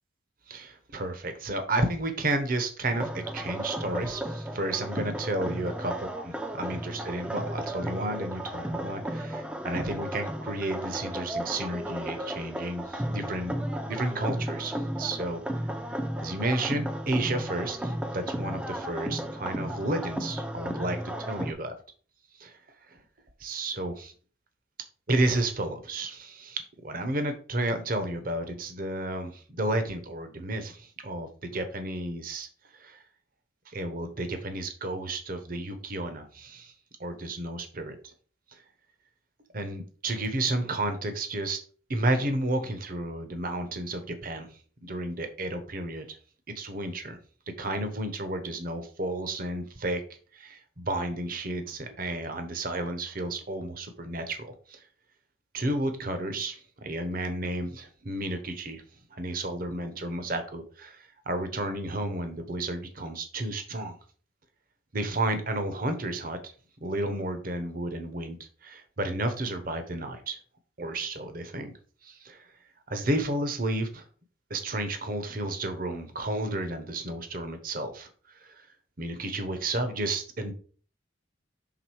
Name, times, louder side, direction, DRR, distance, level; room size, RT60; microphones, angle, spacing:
voice 1, 0.5-13.5 13.8-15.6 16.2-21.7 22.4-22.6 22.9-23.0 23.4-24.1 25.1-32.5 32.7-33.0 33.7-36.7 37.0-38.1 38.5-38.6 39.5-41.6 41.9-44.5 44.8-46.2 46.5-47.2 47.6-50.0 50.3-54.8 55.5-58.8 59.1-64.0 64.9-66.5 66.8-70.4 70.8-71.7 72.0-72.5 72.9-74.0 74.5-78.1 78.3-78.7 79.0-80.5, right 1 dB, 45° right, 8 dB, 0.9 m, -32 dB
sound 1, 2.9-21.5, right 1 dB, 5° right, 0.5 m, -34 dB
6.0 x 3.8 x 4.7 m, 0.41 s
head